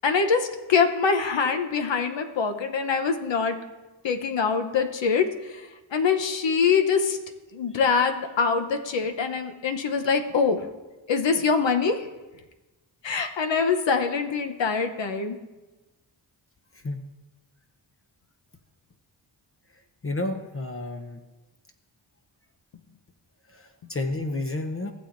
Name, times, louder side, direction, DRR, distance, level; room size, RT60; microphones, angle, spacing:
voice 1, 0.0-3.6 4.0-7.2 7.5-10.7 11.1-12.1 13.0-15.4, left 5 dB, 70° left, 6 dB, 0.9 m, -24 dB
voice 2, 20.0-21.2 23.5-24.9, left 2 dB, 30° left, 5 dB, 0.8 m, -31 dB
16.0 x 7.1 x 2.6 m, 1.1 s
cardioid pair, 65°, 47 cm